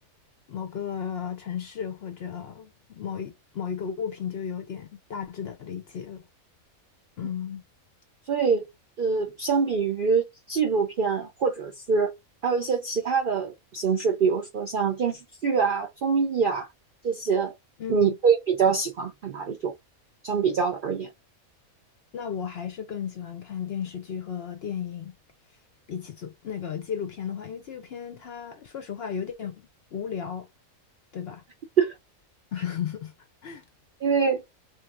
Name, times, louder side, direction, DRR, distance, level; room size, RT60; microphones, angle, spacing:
voice 1, 0.5-6.3 7.2-7.6 17.8-18.2 22.1-25.1 25.9-30.5 31.1-31.4 32.5-33.1 33.4-33.6, left 8 dB, 60° left, 0.6 m, -34 dB
voice 2, 8.3-8.7 9.0-12.1 12.4-16.7 17.0-17.5 17.9-19.7 20.2-21.1 31.8-31.9 34.0-34.4, right 5 dB, 65° right, 0.5 m, -24 dB
3.2 x 2.6 x 2.4 m
omnidirectional pair, 1.5 m